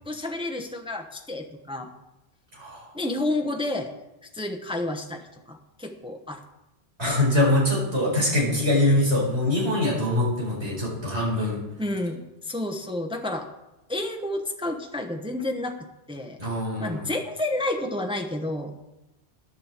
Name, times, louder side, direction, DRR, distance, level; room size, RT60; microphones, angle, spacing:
voice 1, 0.0-1.9 2.9-3.9 4.3-6.4 11.8-13.5 13.9-16.5 16.8-18.8, left 1 dB, 5° right, 4 dB, 0.9 m, -30 dB
voice 2, 2.5-2.9 7.0-11.6 16.4-17.0, left 1 dB, 85° right, -3 dB, 4.9 m, -23 dB
10.5 x 7.6 x 7.4 m, 0.95 s
omnidirectional pair, 1.1 m